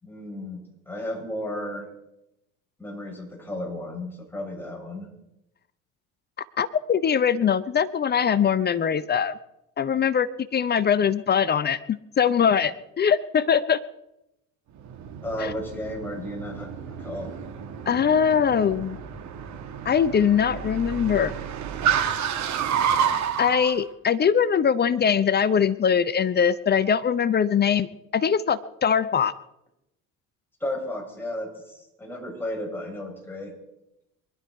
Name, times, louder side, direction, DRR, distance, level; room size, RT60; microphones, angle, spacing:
voice 1, 0.0-1.9 2.8-5.1 15.2-16.7 17.0-17.3 30.6-33.5, left 1 dB, 5° left, -2 dB, 7.2 m, -33 dB
voice 2, 6.6-9.3 9.8-13.8 15.4-15.5 17.9-19.0 19.8-21.3 23.4-27.9 28.1-29.3, left 7 dB, 25° left, 16 dB, 0.8 m, -22 dB
Car, 14.8-23.7, right 8 dB, 45° right, 2.2 m, -29 dB
23.5 x 12.0 x 4.7 m, 0.87 s
figure-of-eight pair, 60°, 39 cm